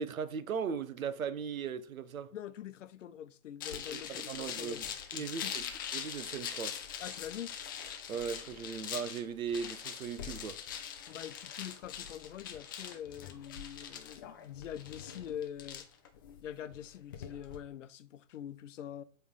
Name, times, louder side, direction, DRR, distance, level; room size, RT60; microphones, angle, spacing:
voice 1, 0.0-2.3 3.9-5.7 5.9-6.8 8.1-10.6, right 6 dB, 85° right, 0.9 m, -38 dB
voice 2, 2.3-4.8 5.1-5.5 7.0-7.5 11.1-15.9 16.4-19.0, left 10 dB, 65° left, 0.8 m, -44 dB
sound 1, 3.6-17.6, left 8 dB, 15° left, 0.3 m, -43 dB
7.7 x 3.4 x 5.4 m
hypercardioid pair, 130°, 40 cm